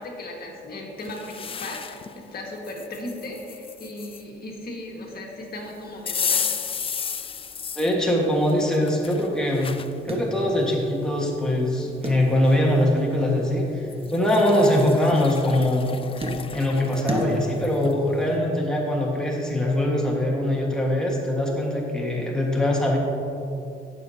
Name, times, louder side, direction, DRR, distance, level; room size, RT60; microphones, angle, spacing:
voice 1, 0.0-6.4, left 1 dB, 50° left, -1 dB, 1.7 m, -36 dB
sound 1, 1.0-2.1 2.6-4.2 6.1-7.9 8.5-9.9 10.5-10.6 11.7-11.8 12.0-12.6 13.9-17.9, left 6 dB, 30° left, 0.4 m, -33 dB
sound 2, 5.6-18.4, equal, 30° right, 1.3 m, -37 dB
voice 2, 7.8-9.7 10.0-15.9 16.5-23.0, left 1 dB, 5° left, -3 dB, 1.5 m, -22 dB
15.0 x 6.7 x 2.8 m, 2.7 s
cardioid pair, 90°, 20 cm